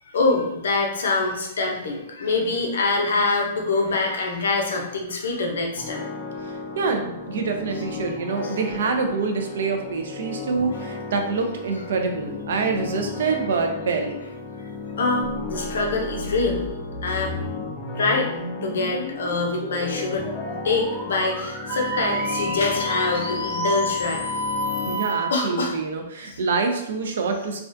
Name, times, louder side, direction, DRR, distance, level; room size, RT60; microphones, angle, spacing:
voice 1, 0.1-6.0 15.0-16.6 17.0-17.3 18.0-18.3 18.6-24.2 25.3-25.7 26.2-26.4, left 3 dB, 85° left, 1 dB, 0.5 m, -24 dB
sound 1, 5.8-25.0, left 4 dB, 25° left, 0.4 m, -35 dB
voice 2, 6.4-14.2 24.9-27.6, right 4 dB, 75° right, 4 dB, 0.4 m, -26 dB
sound 2, 15.2-25.1, left 1 dB, 5° left, 1.1 m, -36 dB
Wind instrument woodwind instrument, 21.7-25.4, equal, 55° right, 0.9 m, -28 dB
2.4 x 2.1 x 2.5 m, 0.83 s
hypercardioid pair, 140°, 0 cm